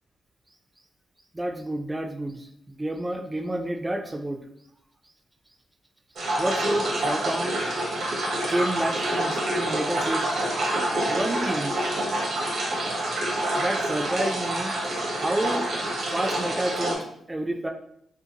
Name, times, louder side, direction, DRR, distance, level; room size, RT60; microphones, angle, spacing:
voice 1, 1.3-4.4 6.4-7.6 8.3-10.3 11.1-11.8 13.5-14.8 15.1-15.7 16.1-17.7, right 1 dB, 20° right, 3 dB, 0.3 m, -29 dB
sound 1, 6.2-17.0, right 1 dB, 65° right, 0.7 m, -27 dB
2.6 x 2.0 x 2.7 m, 0.71 s
supercardioid pair, 60°, 0 cm